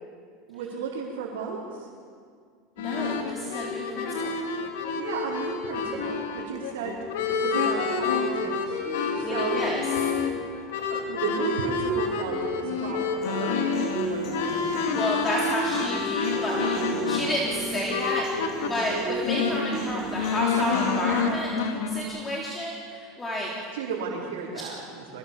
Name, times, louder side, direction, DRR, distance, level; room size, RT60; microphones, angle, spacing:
voice 1, 0.5-1.9 5.0-8.8 9.1-9.6 10.9-14.8 23.7-25.2, right 5 dB, 90° right, -6 dB, 4.4 m, -34 dB
sound 1, 2.8-18.7 19.1-22.0, left 5 dB, 90° left, 2.8 m, -28 dB
voice 2, 2.8-4.4 9.2-9.9 14.9-23.5, equal, 15° left, -3 dB, 3.5 m, -31 dB
sound 2, 4.6-5.0 5.4-5.6 5.9-6.2 7.1-10.5 11.2-12.6 13.4-17.4 18.2-20.8, right 4 dB, 35° right, 3.8 m, -36 dB
Human voice, 13.2-21.2, right 1 dB, 45° left, 7.8 m, -39 dB
25.0 x 19.0 x 7.2 m, 2.1 s
supercardioid pair, 130°, 0 cm